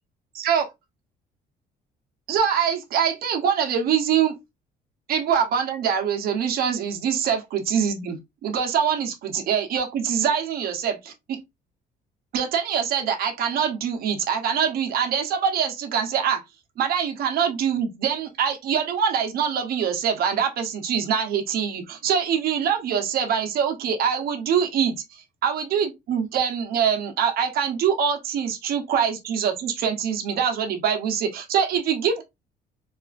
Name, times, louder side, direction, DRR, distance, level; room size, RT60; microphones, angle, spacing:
voice 1, 2.3-4.4 5.1-11.4 12.3-16.4 16.8-25.0 25.4-32.2, right 7 dB, 65° right, 0.9 m, -24 dB
4.2 x 2.5 x 2.4 m
cardioid pair, 110°, 17 cm